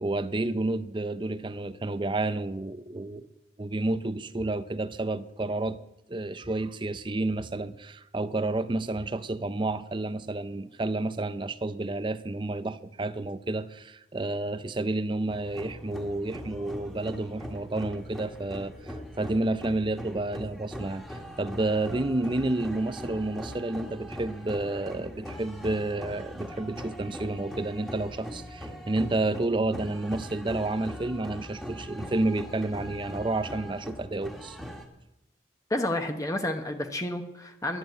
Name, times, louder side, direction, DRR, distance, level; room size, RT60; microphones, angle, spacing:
voice 1, 0.0-3.3 3.6-5.8 6.1-34.6, right 2 dB, 25° right, 13 dB, 0.5 m, -30 dB
sound 1, 15.3-34.9, equal, ahead, 1.6 m, -41 dB
voice 2, 35.7-37.8, left 1 dB, 20° left, 5 dB, 1.0 m, -30 dB
11.0 x 11.0 x 7.8 m, 0.89 s
head